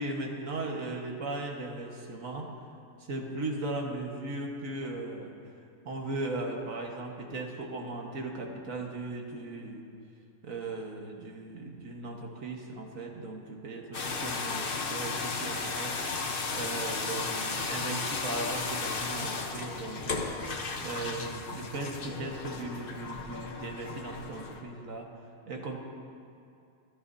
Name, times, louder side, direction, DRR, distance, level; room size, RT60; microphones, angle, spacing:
voice 1, 0.0-2.5 3.0-5.3 5.8-9.8 10.4-15.9 16.5-20.3 20.8-25.1 25.5-25.8, right 2 dB, 75° right, 1 dB, 1.8 m, -37 dB
sound 1, 13.9-24.6, left 4 dB, 45° left, 1.1 m, -34 dB
27.0 x 12.0 x 2.7 m, 2.5 s
omnidirectional pair, 1.4 m